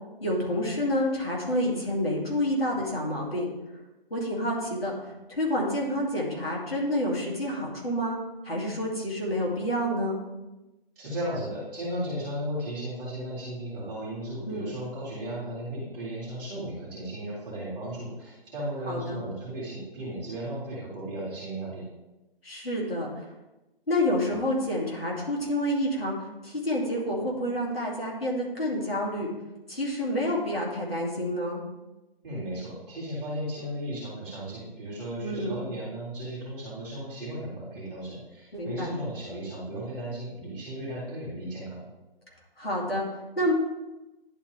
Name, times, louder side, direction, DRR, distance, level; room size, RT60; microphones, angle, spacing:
voice 1, 0.2-3.5 4.1-8.2 8.4-10.2 14.5-14.7 18.9-19.2 22.4-23.3 23.9-29.3 29.7-31.6 35.2-35.6 38.5-38.9 42.6-43.5, left 1 dB, 70° left, -4 dB, 2.4 m, -28 dB
voice 2, 11.0-21.8 32.2-41.8, right 1 dB, 15° right, -11 dB, 2.4 m, -35 dB
11.0 x 4.2 x 3.3 m, 1.0 s
figure-of-eight pair, 150°, 30 cm